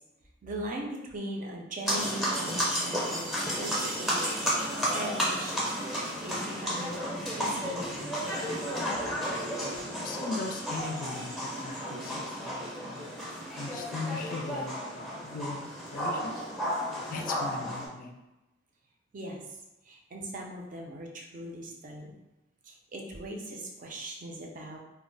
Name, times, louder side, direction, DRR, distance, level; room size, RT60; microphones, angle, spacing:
voice 1, 0.4-4.5 4.8-8.4 19.1-19.6 19.9-22.1 22.7-24.8, right 1 dB, 45° right, 0 dB, 0.5 m, -40 dB
sound 1, 1.9-17.9, equal, ahead, 0.6 m, -32 dB
voice 2, 10.0-13.3 13.5-16.4 17.1-18.2, left 3 dB, 45° left, 3 dB, 0.3 m, -39 dB
2.2 x 2.0 x 3.8 m, 0.99 s
head